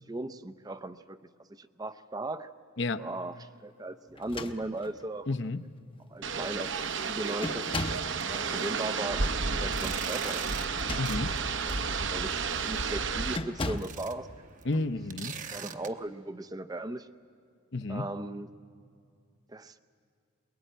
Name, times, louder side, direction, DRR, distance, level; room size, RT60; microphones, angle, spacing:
voice 1, 0.1-1.2 1.5-2.5 3.0-5.3 6.1-7.6 8.3-10.5 11.6-14.3 15.5-17.1 17.9-18.5 19.5-19.8, right 2 dB, 20° right, 12 dB, 0.5 m, -38 dB
sound 1, 4.1-5.1 5.9-6.0 6.4-6.8 7.4-8.2 10.6-11.4 12.0-12.2 13.3-14.0, left 2 dB, 25° left, 0.7 m, -37 dB
voice 2, 5.3-5.6 11.0-11.4 14.6-15.4 17.7-18.1, left 2 dB, 55° left, 12 dB, 0.8 m, -31 dB
sound 2, 6.2-13.4, right 5 dB, 60° right, 0.9 m, -31 dB
sound 3, 6.5-6.8 7.2-7.3 7.8-7.9 8.2-15.9, right 7 dB, 35° right, 0.9 m, -45 dB
23.5 x 21.5 x 9.2 m, 2.4 s
head